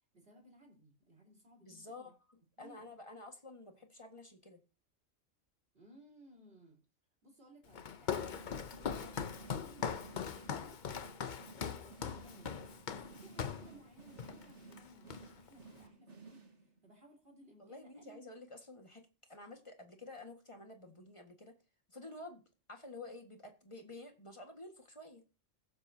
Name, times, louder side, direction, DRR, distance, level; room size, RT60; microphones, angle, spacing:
voice 1, 0.1-2.1 2.6-2.9 5.7-6.8 7.2-10.8 11.8-18.2, right 1 dB, 45° right, 1 dB, 4.1 m, -61 dB
voice 2, 1.6-2.1 2.6-4.6 17.6-21.6 21.9-22.4 22.7-25.2, left 2 dB, 25° left, 4 dB, 1.7 m, -51 dB
Walk footsteps, 7.7-13.7 14.2-14.4 14.7-15.5, left 7 dB, 45° left, 0.7 m, -40 dB
sound 1, 8.1-16.9, right 3 dB, 65° right, 2.1 m, -56 dB
21.5 x 7.9 x 2.8 m, 0.32 s
omnidirectional pair, 1.3 m